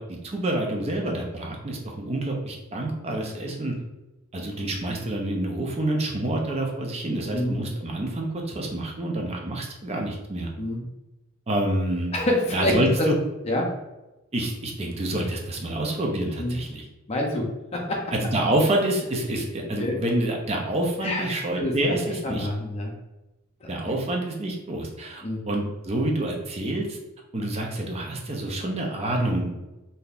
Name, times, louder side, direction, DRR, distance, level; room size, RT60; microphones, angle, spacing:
voice 1, 0.0-3.7 4.3-10.5 11.5-12.1 12.5-13.2 14.3-16.8 18.1-22.5 23.7-27.0 27.3-29.5, right 1 dB, 30° right, 0 dB, 0.5 m, -27 dB
voice 2, 12.1-13.1 13.4-13.7 16.4-16.5 17.1-18.0 19.8-20.0 21.0-21.3 21.6-21.7 22.2-22.9 25.2-25.4, left 1 dB, 30° left, 0 dB, 0.6 m, -26 dB
3.7 x 2.7 x 2.4 m, 1.0 s
head